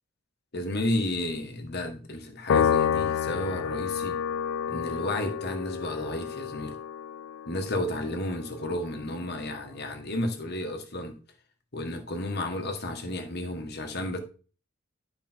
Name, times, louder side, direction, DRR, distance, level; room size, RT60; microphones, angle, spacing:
voice 1, 0.5-4.2 4.7-6.7 7.4-11.1 11.7-14.2, left 1 dB, 50° left, 1.7 m, -32 dB
Piano, 2.5-9.1, left 8 dB, 75° left, 0.4 m, -29 dB
11.5 x 5.1 x 4.5 m
head